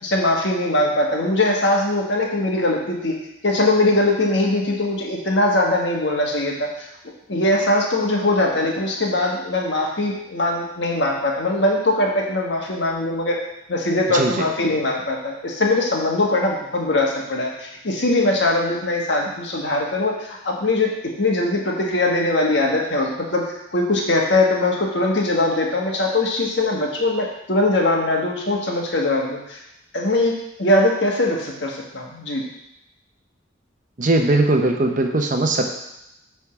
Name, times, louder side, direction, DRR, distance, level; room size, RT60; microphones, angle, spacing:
voice 1, 0.0-3.2 3.4-6.9 7.3-13.4 13.7-20.9 21.2-23.4 23.7-29.6 29.9-32.5, left 2 dB, 70° left, -1 dB, 1.5 m, -21 dB
voice 2, 14.1-14.4 34.0-35.7, right 2 dB, 45° right, 4 dB, 0.8 m, -19 dB
8.2 x 3.6 x 5.9 m, 0.84 s
head